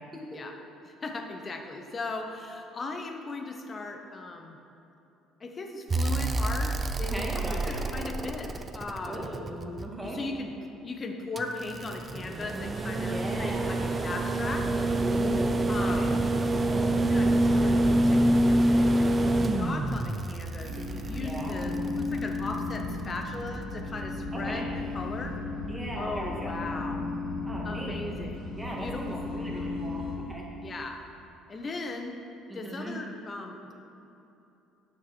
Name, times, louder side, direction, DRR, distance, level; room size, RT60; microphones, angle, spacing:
voice 1, 0.8-4.6 5.4-9.4 10.0-10.5 10.8-14.7 15.7-16.2 16.9-24.7 24.9-25.4 25.9-27.0 27.6-28.5 28.8-29.3 30.6-31.0 31.5-32.2 32.5-33.7, left 3 dB, 30° left, 4 dB, 1.0 m, -38 dB
sound 1, 5.9-10.1 11.4-22.5 24.1-24.2, right 1 dB, 25° right, 0.5 m, -26 dB
voice 2, 7.1-7.8 9.0-10.2 13.0-14.0 15.0-16.2 16.5-16.9 21.1-21.6 24.3-24.6 25.7-26.6 27.4-28.0 28.6-30.5 32.5-32.9, right 1 dB, 10° right, -3 dB, 1.9 m, -38 dB
sound 2, 20.6-30.2, left 2 dB, 75° right, 2.4 m, -35 dB
9.4 x 6.5 x 6.2 m, 2.9 s
cardioid pair, 120°, 0 cm